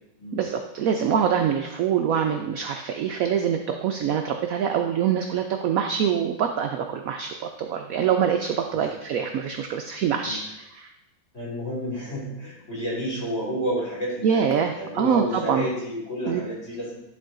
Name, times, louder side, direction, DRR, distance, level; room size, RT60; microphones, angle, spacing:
voice 1, 0.3-10.4 10.7-10.9 14.2-15.7 16.2-16.4, right 8 dB, 80° right, 5 dB, 0.7 m, -24 dB
voice 2, 11.3-14.4 14.8-17.0, equal, 40° left, -6 dB, 3.5 m, -30 dB
10.5 x 3.9 x 3.7 m, 0.86 s
omnidirectional pair, 2.0 m